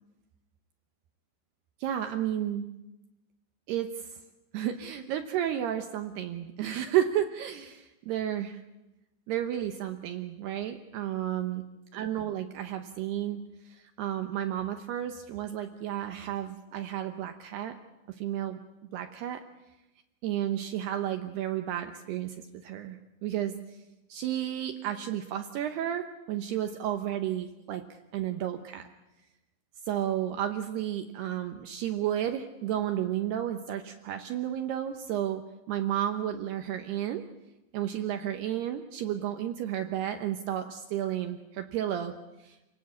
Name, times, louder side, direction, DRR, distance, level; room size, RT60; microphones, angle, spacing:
voice 1, 1.8-2.7 3.7-4.2 4.5-8.6 9.3-11.6 11.9-17.8 18.1-18.6 18.9-19.4 20.2-23.5 24.1-27.9 28.1-28.9 29.9-35.4 35.7-37.2 37.7-42.6, right 11 dB, 80° right, 7 dB, 2.4 m, -32 dB
28.5 x 18.0 x 8.5 m, 0.98 s
omnidirectional pair, 6.0 m